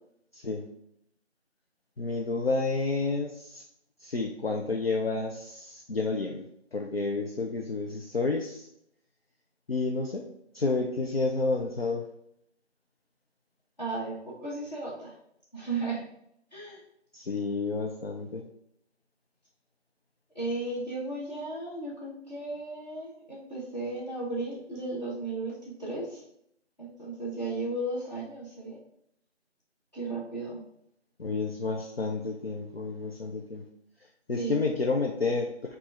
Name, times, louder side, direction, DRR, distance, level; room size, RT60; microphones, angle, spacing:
voice 1, 0.3-0.7 2.0-3.6 4.0-6.4 6.7-8.7 9.7-10.2 10.5-12.1 17.1-18.4 31.2-33.6 34.3-35.8, left 3 dB, 55° left, 1 dB, 0.5 m, -30 dB
voice 2, 13.8-15.1 15.5-16.0 16.5-16.8 20.3-26.2 26.8-28.8 29.9-30.6 34.4-34.6, right 2 dB, 35° left, -8 dB, 1.0 m, -35 dB
4.6 x 2.5 x 4.2 m, 0.73 s
figure-of-eight pair, 170°, 36 cm